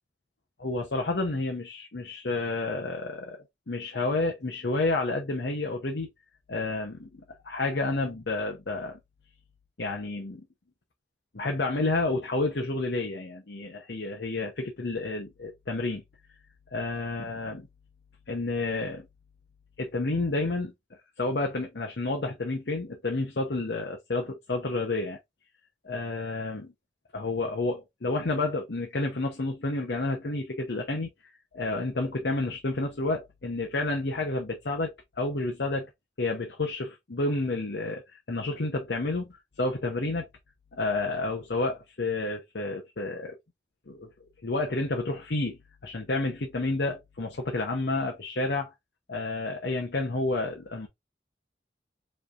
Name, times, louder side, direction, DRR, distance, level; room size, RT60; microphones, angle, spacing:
voice 1, 0.6-6.1 6.5-9.0 9.8-10.5 11.3-16.0 16.7-17.7 18.3-19.1 19.8-25.2 25.8-26.7 27.1-31.1 31.5-35.9 36.2-40.3 40.7-43.4 43.9-44.1 44.4-48.7 49.1-50.9, left 2 dB, 65° left, 0.9 m, -30 dB
5.1 x 3.3 x 2.5 m
head